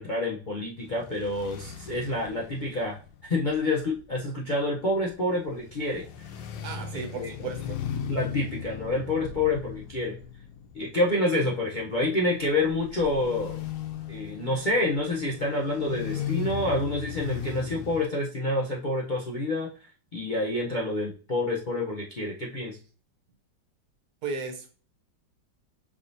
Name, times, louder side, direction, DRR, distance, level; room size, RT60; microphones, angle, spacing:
voice 1, 0.0-3.0 3.2-6.3 6.9-7.3 8.1-10.1 10.7-13.6 14.1-19.7 20.1-22.8, left 2 dB, 70° left, -3 dB, 0.4 m, -28 dB
sound 1, 0.8-18.0, left 8 dB, 85° left, 1.3 m, -38 dB
voice 2, 6.6-7.8 24.2-24.7, right 4 dB, 65° right, 5 dB, 1.3 m, -35 dB
5.4 x 3.5 x 2.6 m, 0.39 s
omnidirectional pair, 2.0 m